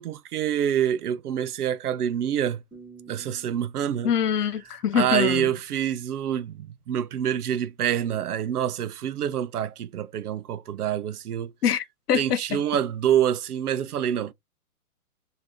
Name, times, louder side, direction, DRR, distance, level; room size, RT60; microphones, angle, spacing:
voice 1, 0.0-2.6 3.1-4.1 4.9-11.5 12.1-14.3, right 10 dB, 75° right, 0.6 m, -26 dB
sound 1, 2.7-5.7, right 5 dB, 5° right, 1.8 m, -52 dB
voice 2, 4.0-5.5 11.6-12.6, left 8 dB, 90° left, 0.6 m, -24 dB
3.3 x 2.7 x 2.9 m
hypercardioid pair, 150°, 45 cm